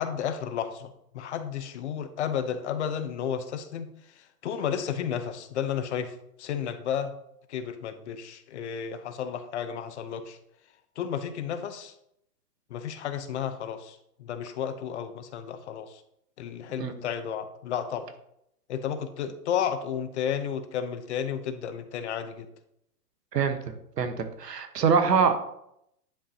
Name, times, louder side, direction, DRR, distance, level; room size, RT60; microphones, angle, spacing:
voice 1, 0.0-3.9 4.4-7.1 7.5-10.4 11.0-11.9 12.7-16.0 16.4-18.1 18.7-22.5, left 8 dB, 45° left, 10 dB, 0.7 m, -32 dB
voice 2, 24.0-25.4, right 6 dB, 85° right, 8 dB, 1.2 m, -24 dB
10.0 x 5.6 x 2.8 m, 0.78 s
hypercardioid pair, 145°, 48 cm